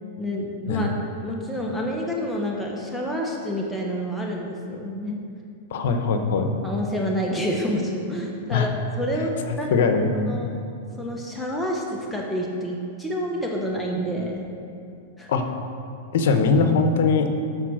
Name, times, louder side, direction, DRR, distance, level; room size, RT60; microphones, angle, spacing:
voice 1, 0.2-0.9 1.2-5.2 6.6-9.3 9.6-9.7 10.3-10.5 11.0-14.4 15.2-15.3, equal, 5° left, -2 dB, 1.1 m, -28 dB
voice 2, 5.7-6.5 8.5-8.7 9.7-10.4 15.3-15.5 16.1-17.3, left 4 dB, 70° left, 7 dB, 1.0 m, -21 dB
12.5 x 4.2 x 6.3 m, 2.5 s
hypercardioid pair, 135°, 0 cm